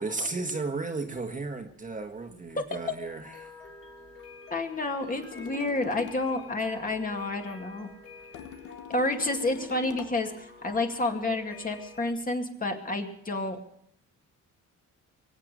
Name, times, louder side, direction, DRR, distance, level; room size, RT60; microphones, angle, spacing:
voice 1, 0.0-3.5, right 3 dB, 25° right, 5 dB, 1.6 m, -34 dB
sound 1, 1.6-12.1, left 4 dB, 45° left, 3.6 m, -49 dB
voice 2, 4.5-7.9 8.9-13.6, left 2 dB, 25° left, 3 dB, 2.3 m, -30 dB
sound 2, 5.1-6.3 8.3-10.3, left 10 dB, 80° left, 1.1 m, -43 dB
23.5 x 8.2 x 6.7 m, 0.77 s
cardioid pair, 90°, 30 cm